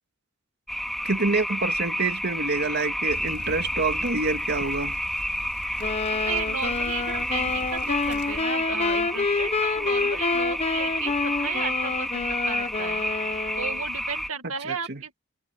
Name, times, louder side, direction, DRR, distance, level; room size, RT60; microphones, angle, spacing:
sound 1, 0.7-14.3, equal, ahead, 2.4 m, -30 dB
voice 1, 1.0-5.0 14.7-15.0, right 3 dB, 55° right, 2.3 m, -27 dB
sound 2, 3.1-8.4, left 1 dB, 60° left, 4.7 m, -41 dB
sound 3, 5.8-13.8, left 4 dB, 30° left, 0.8 m, -28 dB
voice 2, 6.3-13.0 13.6-15.2, right 6 dB, 80° right, 2.1 m, -34 dB
head